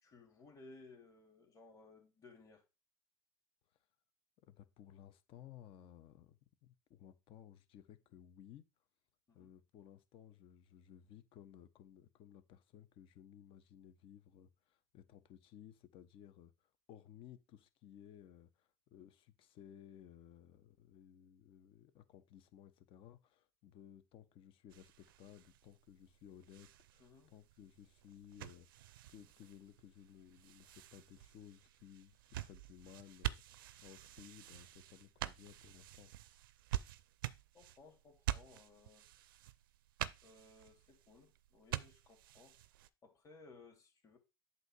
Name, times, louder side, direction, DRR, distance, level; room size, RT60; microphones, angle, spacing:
voice 1, 0.0-2.6 9.3-9.5 27.0-27.3 37.5-39.0 40.2-42.6 43.0-44.2, left 3 dB, 30° left, 2.4 m, -60 dB
voice 2, 4.5-8.7 9.3-16.5 16.9-36.1, left 10 dB, 50° left, 0.9 m, -58 dB
sound 1, 24.7-42.9, right 14 dB, 80° right, 0.5 m, -47 dB
7.9 x 2.8 x 6.1 m
hypercardioid pair, 85°, 12 cm